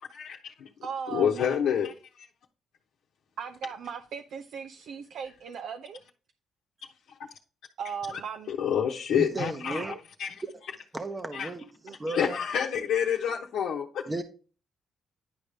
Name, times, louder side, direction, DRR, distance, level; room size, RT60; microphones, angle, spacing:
voice 1, 0.1-0.7 1.1-1.9 8.5-9.8 10.2-10.4 11.3-11.5 12.1-14.0, left 8 dB, 75° left, 0.9 m, -28 dB
voice 2, 0.8-1.6 3.4-6.0 7.8-8.6 9.8-10.0 11.8-12.0, right 6 dB, 70° right, 0.6 m, -38 dB
voice 3, 9.1-9.9 10.4-10.5 10.9-12.4 14.1-14.2, right 2 dB, 20° right, 0.9 m, -35 dB
10.5 x 5.1 x 3.4 m
cardioid pair, 90°, 0 cm